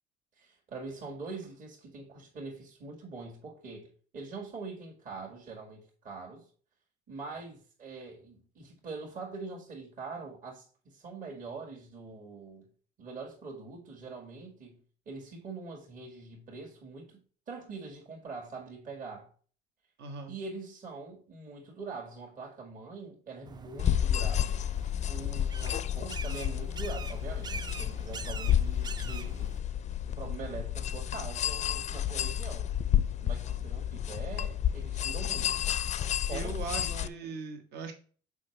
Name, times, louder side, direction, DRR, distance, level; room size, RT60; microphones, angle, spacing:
voice 1, 0.4-6.4 7.1-12.7 13.0-14.8 15.0-17.2 17.5-19.3 20.3-24.6 25.0-29.5 30.1-32.7 33.2-35.6 36.3-37.4, right 4 dB, 55° right, 1.8 m, -43 dB
voice 2, 20.0-20.4 36.3-37.9, right 5 dB, 75° right, 1.2 m, -39 dB
sound 1, 23.4-29.6, right 5 dB, 25° right, 0.4 m, -45 dB
sound 2, 23.8-37.1, left 10 dB, 45° left, 0.4 m, -31 dB
6.2 x 4.9 x 3.2 m
cardioid pair, 110°, 17 cm